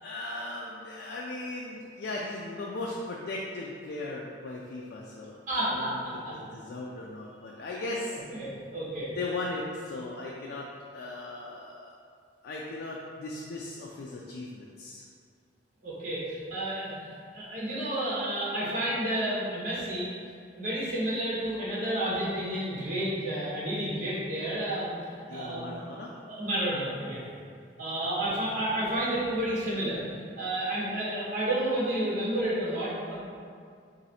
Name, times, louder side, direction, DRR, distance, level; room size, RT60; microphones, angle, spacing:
voice 1, 0.0-8.2 9.2-10.7 10.9-11.9 12.4-15.0 25.3-26.1 28.0-28.4, left 2 dB, 65° left, -3 dB, 0.4 m, -38 dB
voice 2, 5.5-6.0 6.2-6.3 8.3-9.1 15.8-20.1 20.5-24.9 25.3-25.7 26.3-27.2 27.8-30.0 30.4-33.2, right 1 dB, 50° right, -9 dB, 1.4 m, -31 dB
3.1 x 2.6 x 4.2 m, 2.2 s
head